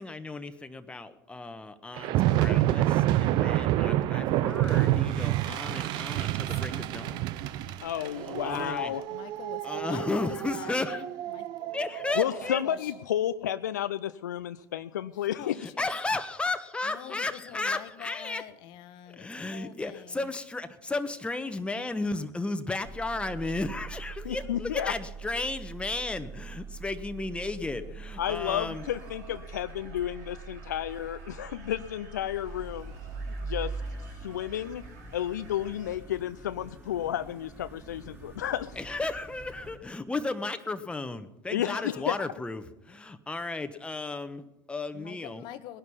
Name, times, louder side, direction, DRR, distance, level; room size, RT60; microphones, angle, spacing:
voice 1, 0.0-7.2 8.3-8.9 9.6-11.0 11.7-12.6 15.6-18.4 19.1-28.9 38.8-45.5, left 3 dB, 10° left, 9 dB, 1.2 m, -34 dB
sound 1, 2.0-12.5, right 14 dB, 55° right, 0.6 m, -28 dB
voice 2, 6.7-7.2 7.4-8.4 8.7-12.9 15.4-15.9 16.8-20.3 44.9-45.8, left 12 dB, 55° left, 12 dB, 1.1 m, -46 dB
voice 3, 7.8-9.0 12.2-15.6 24.2-24.9 28.2-32.9 33.4-33.7 34.2-34.8 35.1-38.7 41.5-42.3, left 11 dB, 80° left, 12 dB, 0.4 m, -32 dB
sound 2, 22.8-39.8, right 4 dB, 20° right, 4.5 m, -43 dB
sound 3, 28.2-36.0, right 4 dB, 75° right, 3.4 m, -50 dB
19.5 x 11.0 x 5.6 m, 0.90 s
hypercardioid pair, 75°, 9 cm